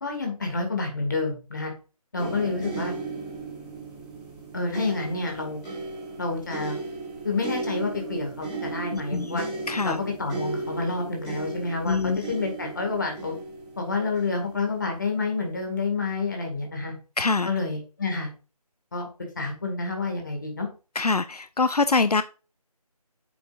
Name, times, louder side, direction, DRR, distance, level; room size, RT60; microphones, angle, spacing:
voice 1, 0.0-1.7 2.1-3.0 4.5-5.6 6.2-6.8 7.2-9.4 9.8-13.4 13.8-16.9 17.4-18.3 18.9-19.1 19.4-20.7, left 3 dB, 30° left, 2.0 m, -29 dB
sound 1, 2.2-15.2 16.1-16.2, right 3 dB, 10° left, 2.7 m, -35 dB
voice 2, 8.9-9.4 9.7-10.0 11.8-12.2 17.2-17.5 21.0-22.2, left 4 dB, 75° left, 0.5 m, -24 dB
8.6 x 7.0 x 2.5 m
figure-of-eight pair, 165°, 20 cm